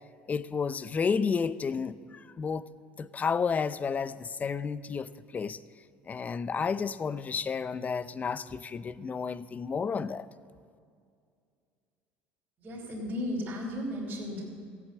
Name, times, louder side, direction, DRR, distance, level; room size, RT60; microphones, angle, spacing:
voice 1, 0.3-2.7 3.0-5.6 6.1-10.3, left 5 dB, 30° left, 16 dB, 0.5 m, -31 dB
voice 2, 12.6-14.5, left 1 dB, 35° right, -6 dB, 3.4 m, -35 dB
15.5 x 8.4 x 7.5 m, 2.3 s
supercardioid pair, 85°, 5 cm